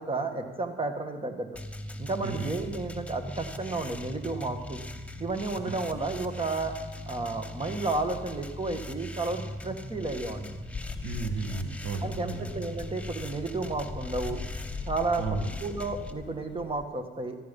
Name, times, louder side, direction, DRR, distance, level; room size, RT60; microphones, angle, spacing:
voice 1, 0.0-1.5 2.0-4.8 5.2-6.7 7.1-10.5 12.0-14.4 14.9-15.2 15.6-17.4, right 3 dB, 25° right, 6 dB, 1.9 m, -32 dB
sound 1, 1.5-16.1, left 1 dB, 5° left, 1.0 m, -40 dB
sound 2, 10.7-16.8, left 5 dB, 25° left, 1.3 m, -40 dB
voice 2, 11.0-12.5 15.2-15.6, right 4 dB, 85° right, 5 dB, 1.5 m, -34 dB
14.5 x 13.0 x 5.5 m, 1.3 s
cardioid pair, 90°, 20 cm